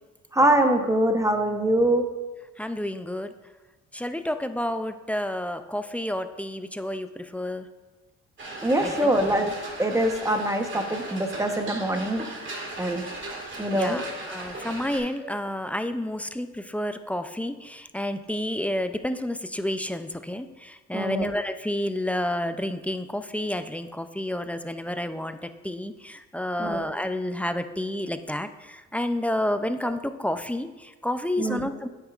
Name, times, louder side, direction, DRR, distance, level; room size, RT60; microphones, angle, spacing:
voice 1, 0.3-2.0 8.6-9.5 9.8-13.0 13.6-14.0 20.9-21.3 26.6-26.8 31.4-31.7, right 1 dB, 10° right, 5 dB, 0.9 m, -24 dB
voice 2, 2.6-3.3 3.9-7.7 8.8-9.1 13.7-31.9, left 1 dB, 5° left, 9 dB, 0.4 m, -30 dB
sound 1, 8.4-15.0, right 2 dB, 40° right, 1.9 m, -37 dB
9.2 x 8.2 x 2.4 m, 1.2 s
cardioid pair, 90°, 30 cm